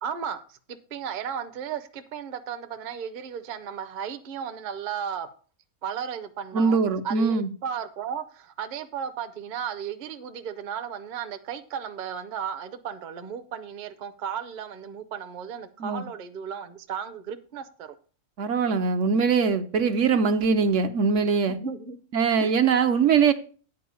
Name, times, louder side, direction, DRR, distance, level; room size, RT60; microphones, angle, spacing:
voice 1, 0.0-5.3 5.8-17.9 21.5-22.0 22.4-22.5, right 8 dB, 45° right, 0.7 m, -35 dB
voice 2, 6.5-7.5 15.8-16.0 18.4-21.6 22.1-23.3, right 5 dB, 65° right, 1.0 m, -22 dB
9.4 x 4.5 x 6.9 m
omnidirectional pair, 1.5 m